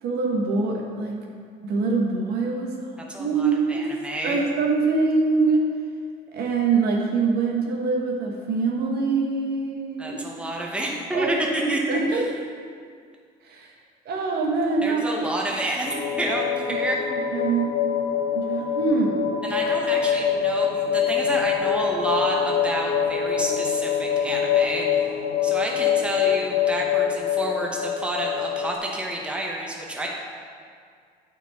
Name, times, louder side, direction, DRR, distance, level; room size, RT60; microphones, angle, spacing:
voice 1, 0.0-1.2 1.6-2.9 3.2-3.9 4.2-5.6 6.3-10.4 11.1-11.3 11.6-12.3 13.4-13.7 14.0-15.0 16.8-16.9 17.1-17.7 18.3-19.3, right 4 dB, 70° right, 0 dB, 1.2 m, -24 dB
voice 2, 3.1-4.4 10.0-12.2 14.8-17.0 19.4-25.0 25.4-30.1, right 1 dB, 5° right, -2 dB, 1.0 m, -29 dB
sound 1, 15.9-28.8, left 8 dB, 85° left, 0.6 m, -25 dB
8.8 x 4.4 x 4.2 m, 2.1 s
cardioid pair, 110°, 17 cm